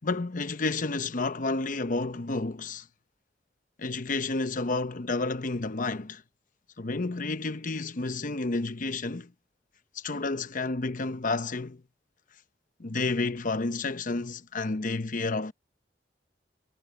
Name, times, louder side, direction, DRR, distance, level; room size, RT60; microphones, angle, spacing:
voice 1, 0.0-2.9 3.8-6.2 6.8-9.3 9.9-11.8 12.8-15.5, left 3 dB, 50° left, 0.9 m, -30 dB
head